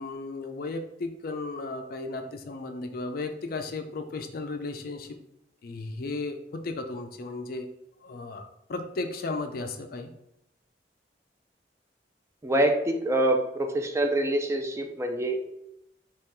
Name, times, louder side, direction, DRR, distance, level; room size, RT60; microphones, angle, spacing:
voice 1, 0.0-5.2 5.6-6.4 6.6-7.7 8.0-10.1, left 3 dB, 55° left, 6 dB, 0.5 m, -35 dB
voice 2, 12.4-15.4, right 1 dB, 15° right, 4 dB, 0.4 m, -25 dB
3.7 x 3.1 x 4.3 m, 0.82 s
head